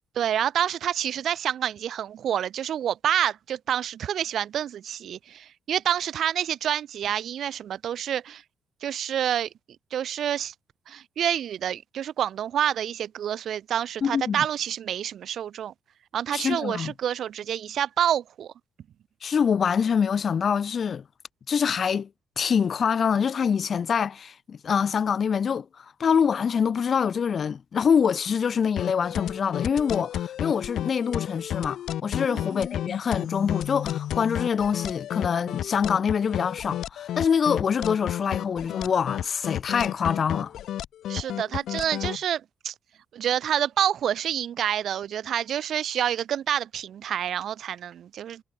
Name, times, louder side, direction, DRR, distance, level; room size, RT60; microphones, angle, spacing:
voice 1, 0.2-8.4 8.8-9.5 9.9-10.5 10.9-15.7 16.1-18.5 32.3-32.5 41.1-42.7 43.1-48.4, right 10 dB, 55° right, 3.5 m, -28 dB
voice 2, 14.0-14.4 16.3-16.9 19.2-21.0 21.5-22.1 22.4-40.5, left 7 dB, 35° left, 1.2 m, -25 dB
sound 1, 28.8-42.2, left 11 dB, 70° left, 1.6 m, -31 dB
cardioid pair, 170°, 0 cm